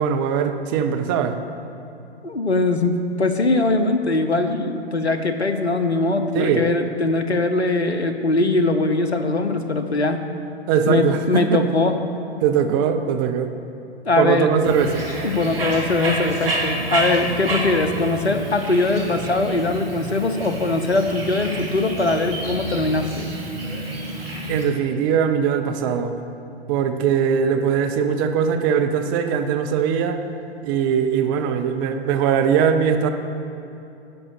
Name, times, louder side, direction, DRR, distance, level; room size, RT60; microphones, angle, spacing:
voice 1, 0.0-1.4 6.3-6.7 10.7-11.6 12.4-13.5 14.2-15.0 24.5-26.1 26.7-30.2 30.6-33.1, right 7 dB, 20° right, 6 dB, 0.4 m, -21 dB
voice 2, 2.2-10.3 10.9-12.0 14.0-14.5 15.2-23.3, left 2 dB, 85° left, 8 dB, 0.8 m, -21 dB
Bird, 14.6-24.6, right 1 dB, 60° right, 2.6 m, -29 dB
10.5 x 5.3 x 6.5 m, 2.7 s
figure-of-eight pair, 110°, 32 cm